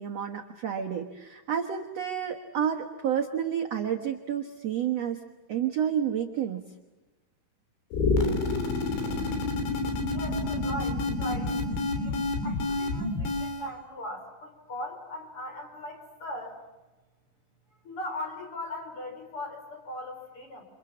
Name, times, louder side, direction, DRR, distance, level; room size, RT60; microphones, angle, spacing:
voice 1, 0.0-5.2 5.5-6.6, right 9 dB, 70° right, 4 dB, 1.5 m, -30 dB
sound 1, 7.9-13.7, left 2 dB, 85° left, 5.5 m, -28 dB
voice 2, 10.1-11.6 12.0-16.6 17.8-20.6, left 1 dB, 30° left, 3 dB, 5.0 m, -39 dB
28.5 x 25.5 x 7.3 m, 1.1 s
omnidirectional pair, 5.0 m